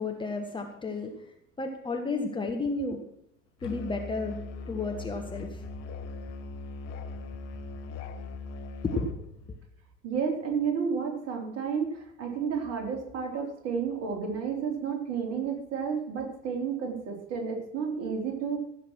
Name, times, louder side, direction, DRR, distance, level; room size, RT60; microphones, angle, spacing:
voice 1, 0.0-3.0 3.6-4.4 4.7-5.6 8.8-9.1 9.5-9.6, left 3 dB, 15° left, 3 dB, 1.5 m, -32 dB
Musical instrument, 3.6-9.2, left 3 dB, 45° left, 1.4 m, -40 dB
voice 2, 10.0-18.6, right 6 dB, 40° right, 2 dB, 3.8 m, -31 dB
15.5 x 6.8 x 6.2 m, 0.76 s
figure-of-eight pair, 75°, 36 cm